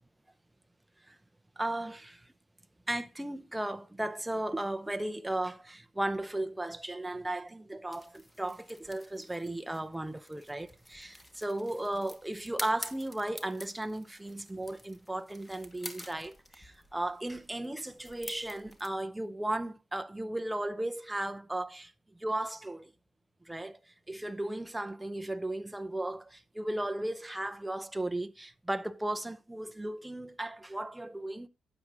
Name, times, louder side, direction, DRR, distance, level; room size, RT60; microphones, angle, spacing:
voice 1, 1.6-2.3 2.9-22.9 23.4-31.5, right 1 dB, 10° right, 0.7 m, -36 dB
sound 1, 7.9-18.9, equal, 10° left, 1.4 m, -49 dB
12.0 x 8.8 x 2.5 m
cardioid pair, 90°, 0 cm